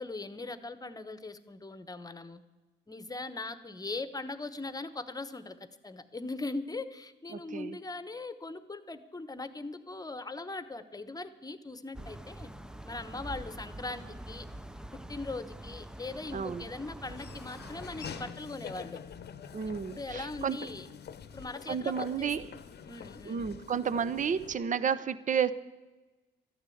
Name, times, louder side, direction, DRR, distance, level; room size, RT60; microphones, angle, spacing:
voice 1, 0.0-2.4 2.9-5.6 5.8-12.5 12.8-14.5 15.1-19.0 19.9-20.9 21.3-22.5 22.9-23.5, left 3 dB, 20° left, 13 dB, 1.0 m, -40 dB
voice 2, 7.3-7.8 16.3-16.7 19.5-20.6 21.7-22.5 23.2-25.5, right 7 dB, 40° right, 16 dB, 0.7 m, -31 dB
sound 1, 11.9-18.3, right 1 dB, 5° right, 0.5 m, -45 dB
Laughter / Walk footsteps, 17.0-24.5, left 7 dB, 55° left, 0.9 m, -46 dB
13.0 x 9.8 x 8.5 m, 1.2 s
cardioid pair, 90°, 20 cm